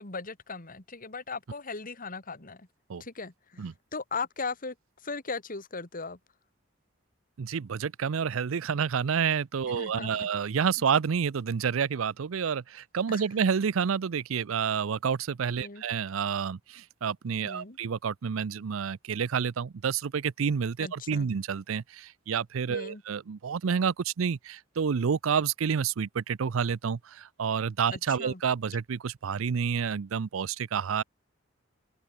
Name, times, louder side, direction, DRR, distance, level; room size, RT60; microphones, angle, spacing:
voice 1, 0.0-2.7 3.0-4.7 5.0-6.2 9.7-10.3 13.1-13.2 15.6-15.8 17.4-17.8 20.8-21.3 22.7-23.0 27.9-28.4, left 4 dB, 45° left, 2.5 m, -38 dB
voice 2, 7.4-31.0, right 6 dB, 85° right, 0.5 m, -29 dB
open air
head